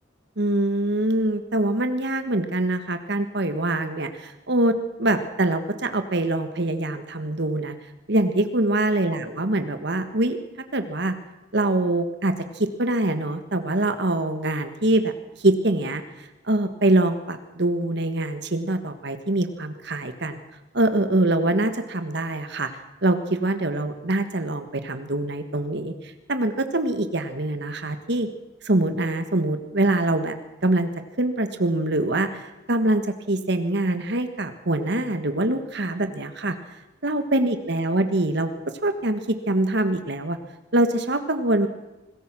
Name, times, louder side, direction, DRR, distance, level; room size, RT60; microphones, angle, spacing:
voice 1, 0.4-7.7 8.1-10.4 10.7-11.1 11.5-20.4 20.7-22.7 23.0-28.3 28.6-30.4 30.6-30.9 31.2-36.5 37.0-38.5 38.8-40.4 40.7-41.7, right 1 dB, 60° right, 8 dB, 1.5 m, -24 dB
26.0 x 20.5 x 6.2 m, 1.0 s
head